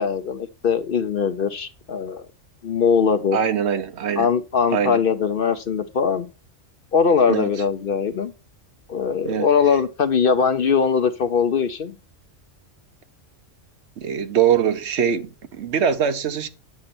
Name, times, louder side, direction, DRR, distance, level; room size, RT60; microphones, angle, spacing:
voice 1, 0.0-2.2 2.6-3.4 4.2-6.3 6.9-8.3 8.9-12.0, left 6 dB, 55° left, 0.7 m, -21 dB
voice 2, 3.3-4.3 4.7-5.0 7.3-7.5 9.2-9.5 14.0-16.5, right 8 dB, 65° right, 1.0 m, -22 dB
8.5 x 6.4 x 4.3 m
omnidirectional pair, 1.3 m